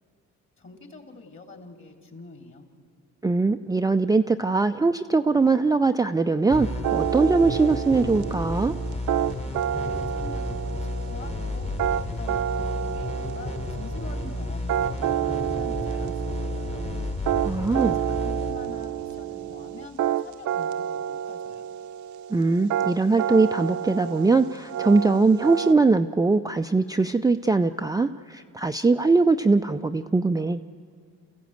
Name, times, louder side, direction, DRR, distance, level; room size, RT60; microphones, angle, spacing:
voice 1, 0.6-2.6 9.8-16.9 17.5-21.7, left 3 dB, 40° left, 4 dB, 3.2 m, -45 dB
voice 2, 3.2-8.7 17.4-17.9 22.3-30.6, right 3 dB, 10° right, 6 dB, 0.5 m, -21 dB
sound 1, 6.5-19.8, left 2 dB, 20° left, 1.4 m, -32 dB
sound 2, 6.8-25.7, right 10 dB, 70° right, 0.8 m, -29 dB
28.0 x 15.0 x 8.0 m, 2.3 s
cardioid pair, 90°, 30 cm